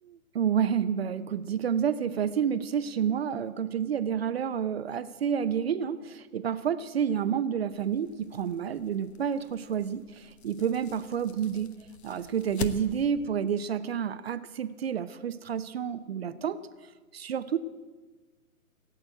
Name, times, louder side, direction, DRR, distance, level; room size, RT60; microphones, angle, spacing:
voice 1, 0.0-11.7 12.0-16.6 17.1-17.6, right 8 dB, 45° right, 12 dB, 0.7 m, -29 dB
sound 1, 7.7-13.3, left 5 dB, 45° left, 1.2 m, -43 dB
17.5 x 8.8 x 9.0 m, 1.3 s
figure-of-eight pair, 130°, 43 cm